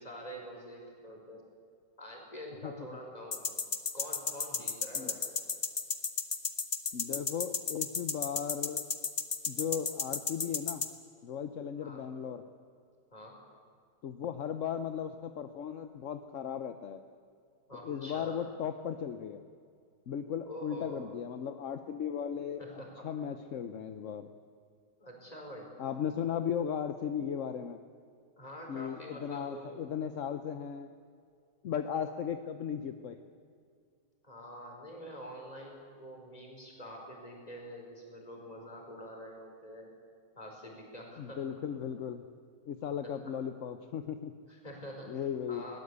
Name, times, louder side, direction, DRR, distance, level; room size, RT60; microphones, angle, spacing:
voice 1, 0.0-1.4 2.0-3.5 3.9-5.3 11.8-12.0 13.1-13.4 17.7-18.4 20.4-21.1 22.6-23.1 25.0-25.7 28.4-29.8 34.2-39.9 40.3-41.4 43.0-43.1 44.5-45.2 45.5-45.8, equal, 20° left, 0 dB, 4.7 m, -46 dB
sound 1, 3.3-10.9, left 5 dB, 35° left, 1.3 m, -32 dB
voice 2, 6.9-8.8 9.5-10.8 11.2-12.4 14.0-17.0 17.7-19.4 20.1-24.3 25.8-27.8 28.7-30.9 31.6-33.2 41.2-42.2 42.7-44.3 45.1-45.6, left 8 dB, 55° left, 8 dB, 1.0 m, -36 dB
21.5 x 18.0 x 8.2 m, 2.2 s
omnidirectional pair, 1.9 m